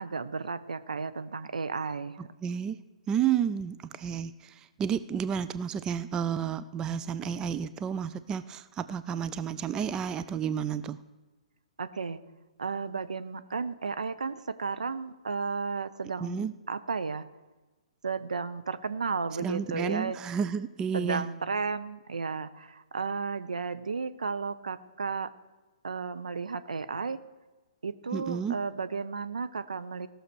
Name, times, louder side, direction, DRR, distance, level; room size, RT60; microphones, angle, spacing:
voice 1, 0.0-2.3 11.8-12.2 12.6-17.2 18.0-20.2 20.9-25.3 25.8-27.2 27.8-30.1, right 4 dB, 75° right, 11 dB, 0.7 m, -33 dB
voice 2, 2.4-2.8 3.1-11.0 16.2-16.5 19.4-21.3 28.1-28.6, right 8 dB, 15° right, 13 dB, 0.4 m, -31 dB
16.5 x 6.5 x 6.2 m, 1.2 s
figure-of-eight pair, 125°, 4 cm